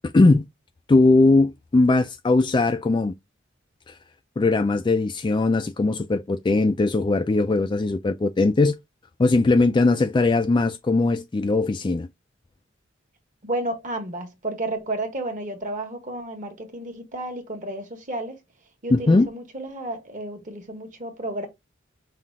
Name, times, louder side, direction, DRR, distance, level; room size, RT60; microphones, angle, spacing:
voice 1, 0.1-0.4 0.9-3.1 3.9-4.0 4.4-8.8 9.2-12.1 18.9-19.3, left 3 dB, 25° left, 0.3 m, -19 dB
voice 2, 13.4-18.4 18.8-21.5, right 1 dB, 40° right, 1.4 m, -32 dB
5.7 x 2.4 x 3.5 m
head